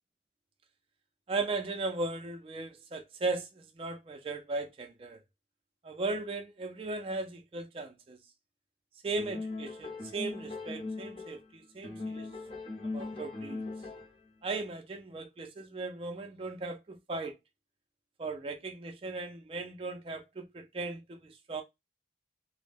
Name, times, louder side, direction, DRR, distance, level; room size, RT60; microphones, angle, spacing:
voice 1, 1.3-5.2 5.8-8.2 9.0-12.3 12.9-13.6 14.4-17.3 18.2-21.6, right 3 dB, 30° right, 0.4 m, -37 dB
sound 1, 9.2-11.5 11.8-14.3, left 3 dB, 30° left, 0.6 m, -40 dB
2.2 x 2.0 x 3.2 m
head